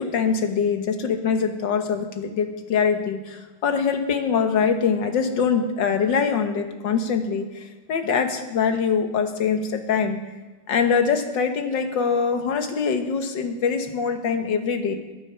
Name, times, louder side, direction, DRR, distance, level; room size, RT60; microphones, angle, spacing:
voice 1, 0.0-7.5 7.9-10.2 10.7-14.9, left 6 dB, 60° left, 6 dB, 1.9 m, -23 dB
20.5 x 8.7 x 5.7 m, 1.2 s
omnidirectional pair, 2.3 m